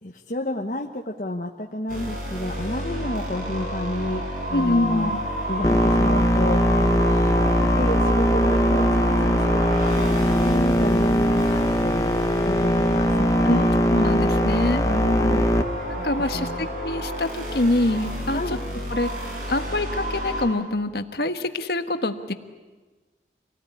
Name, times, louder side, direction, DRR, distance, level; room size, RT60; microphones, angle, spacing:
voice 1, 0.0-4.2 4.5-5.1 5.5-12.1 12.4-13.7 14.8-15.5 15.9-16.0 16.3-16.7 18.3-18.6, left 1 dB, 45° left, 0 dB, 1.2 m, -30 dB
sound 1, 1.9-20.4, equal, 50° right, 7.2 m, -30 dB
voice 2, 4.5-5.2 13.4-14.8 16.0-18.6 18.9-19.1 19.5-22.3, left 2 dB, 65° left, 8 dB, 1.5 m, -25 dB
sound 2, 5.6-15.6, equal, 20° left, 1.0 m, -20 dB
26.5 x 18.5 x 10.0 m, 1.3 s
head